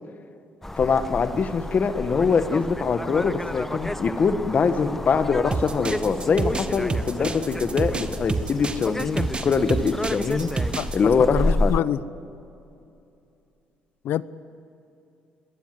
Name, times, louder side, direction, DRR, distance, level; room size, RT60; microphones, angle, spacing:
sound 1, 0.6-11.8, left 1 dB, 10° left, 0.8 m, -31 dB
voice 1, 0.8-10.5 10.9-11.7, left 5 dB, 45° left, 10 dB, 1.5 m, -23 dB
sound 2, 5.5-11.0, right 3 dB, 25° right, 1.6 m, -28 dB
voice 2, 10.7-12.0 14.0-14.2, left 11 dB, 70° left, 17 dB, 0.8 m, -26 dB
27.5 x 21.5 x 7.8 m, 2.7 s
cardioid pair, 90°, 4 cm